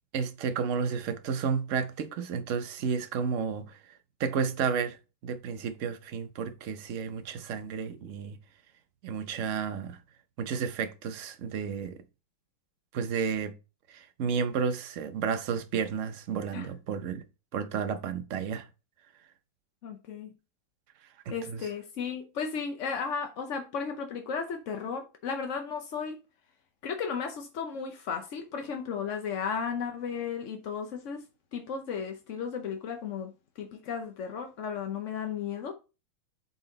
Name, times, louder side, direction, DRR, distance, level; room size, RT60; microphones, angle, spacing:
voice 1, 0.1-8.4 9.0-10.0 10.4-12.0 12.9-13.5 13.9-17.2 17.5-18.7 21.3-21.7, right 6 dB, 65° right, 0.7 m, -32 dB
voice 2, 19.8-20.3 21.3-26.2 26.8-31.2 31.5-33.3 33.6-35.7, left 6 dB, 60° left, 0.8 m, -34 dB
8.1 x 4.1 x 3.9 m
omnidirectional pair, 2.2 m